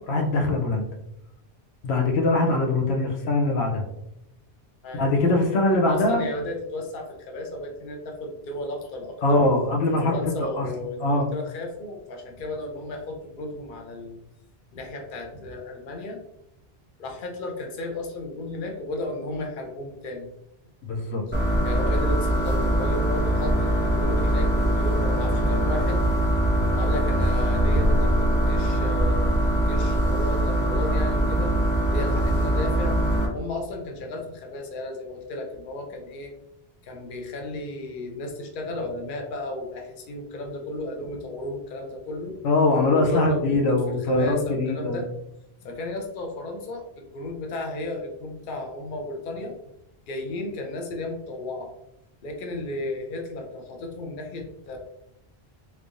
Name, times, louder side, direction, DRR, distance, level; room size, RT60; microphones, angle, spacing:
voice 1, 0.1-0.9 1.8-3.8 4.9-6.2 9.2-10.2 10.5-10.7 11.0-11.3 20.8-21.2 42.4-45.0, left 2 dB, 90° left, 2 dB, 0.9 m, -22 dB
voice 2, 5.8-9.4 10.0-14.2 14.7-16.2 17.0-20.3 21.6-26.1 26.7-31.5 31.9-36.3 36.8-42.4 42.9-45.1 45.6-49.5 50.1-51.7 52.2-54.8, left 1 dB, 55° left, 2 dB, 0.8 m, -34 dB
sound 1, 21.3-33.3, right 1 dB, 10° left, 1.2 m, -22 dB
3.3 x 3.2 x 2.5 m, 0.82 s
omnidirectional pair, 1.1 m